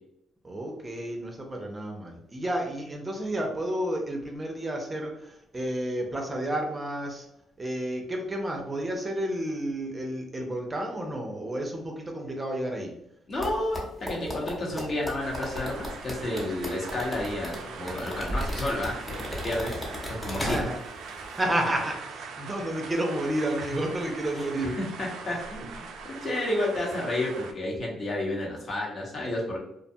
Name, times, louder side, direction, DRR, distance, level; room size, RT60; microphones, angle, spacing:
voice 1, 0.4-7.3 7.6-12.9 16.5-16.6 20.4-20.7 21.4-24.8 26.0-26.2, right 1 dB, 25° right, 2 dB, 0.5 m, -31 dB
voice 2, 13.3-19.8 20.1-20.6 24.4-25.9 26.2-29.6, left 1 dB, 50° left, -2 dB, 0.9 m, -31 dB
sound 1, 13.4-20.9 21.2-21.4, left 1 dB, 20° left, 0.9 m, -35 dB
sound 2, 15.2-27.5, right 5 dB, 80° right, 0.3 m, -41 dB
2.5 x 2.1 x 2.6 m, 0.78 s
cardioid pair, 90°, 0 cm